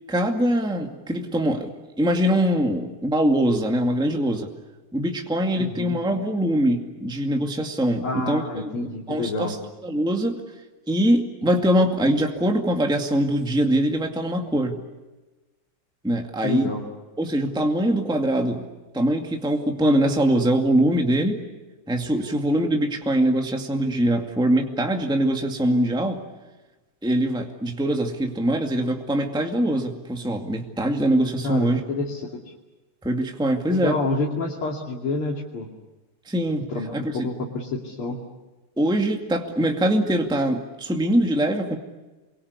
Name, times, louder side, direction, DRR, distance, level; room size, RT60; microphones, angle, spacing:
voice 1, 0.1-1.7 2.0-4.5 4.9-8.7 9.1-9.6 9.8-10.4 10.9-14.8 16.0-16.7 17.2-18.7 18.9-21.4 21.9-26.2 27.0-31.8 33.0-34.0 36.3-37.3 38.8-41.8, right 1 dB, ahead, 3 dB, 2.0 m, -23 dB
voice 2, 5.6-6.0 8.0-9.5 16.4-16.8 31.4-32.2 33.7-35.7 36.7-38.2, left 3 dB, 75° left, -2 dB, 3.6 m, -28 dB
29.5 x 23.0 x 8.3 m, 1.1 s
omnidirectional pair, 2.4 m